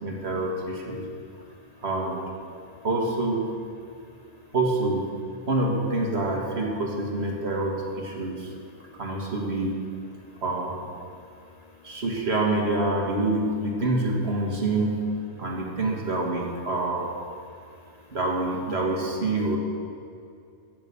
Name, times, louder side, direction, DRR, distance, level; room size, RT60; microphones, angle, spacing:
voice 1, 0.0-1.0 1.8-2.4 2.8-3.5 4.5-5.1 5.5-8.5 8.9-9.8 10.4-10.9 11.8-15.1 15.4-17.1 18.1-19.6, right 2 dB, 60° right, 0 dB, 2.0 m, -26 dB
voice 2, 11.1-12.0 17.4-18.2, left 5 dB, 55° left, 7 dB, 0.4 m, -55 dB
15.5 x 6.7 x 7.0 m, 2.4 s
omnidirectional pair, 1.2 m